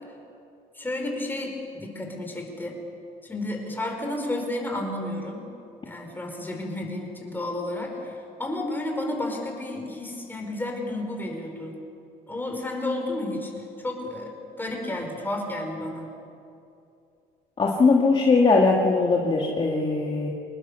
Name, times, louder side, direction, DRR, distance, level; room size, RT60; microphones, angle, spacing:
voice 1, 0.7-2.8 3.2-5.5 5.8-11.7 12.3-16.1, left 1 dB, 10° left, 2 dB, 4.9 m, -32 dB
voice 2, 17.6-20.3, left 3 dB, 30° left, -1 dB, 2.2 m, -20 dB
26.0 x 20.0 x 7.1 m, 2.7 s
cardioid pair, 110°, 17 cm